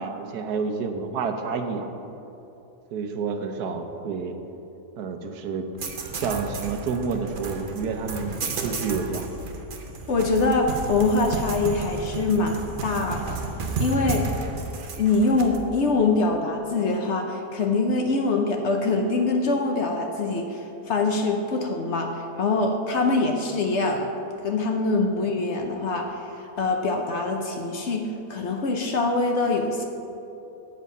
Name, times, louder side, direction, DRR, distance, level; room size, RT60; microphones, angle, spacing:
voice 1, 0.0-1.9 2.9-4.4 5.0-5.7 6.1-9.3, right 5 dB, 80° right, 6 dB, 1.3 m, -29 dB
sound 1, 5.8-15.6, right 3 dB, 45° right, 0.7 m, -32 dB
voice 2, 10.1-13.4 13.8-14.3 15.0-20.6 20.9-24.1 24.4-26.1 26.6-29.9, left 3 dB, 55° left, 3 dB, 0.9 m, -24 dB
8.1 x 7.6 x 5.4 m, 2.9 s
omnidirectional pair, 1.6 m